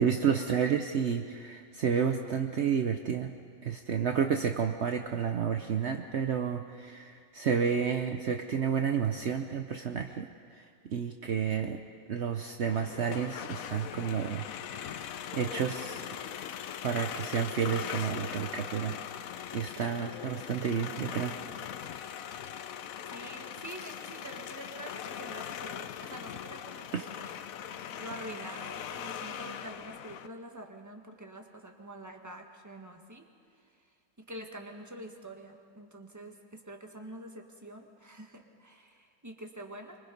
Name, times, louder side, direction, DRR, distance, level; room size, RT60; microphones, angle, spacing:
voice 1, 0.0-3.4 3.6-10.3 10.5-11.8 12.1-14.4 14.7-16.1 16.8-19.0 19.5-21.5 26.9-27.0, right 7 dB, 65° right, 5 dB, 0.7 m, -31 dB
sound 1, 12.7-30.3, left 9 dB, 65° left, 0.8 m, -40 dB
voice 2, 23.1-27.2 28.0-33.3 34.3-40.0, right 1 dB, 10° right, 3 dB, 1.4 m, -46 dB
25.5 x 24.5 x 5.4 m, 2.2 s
omnidirectional pair, 2.2 m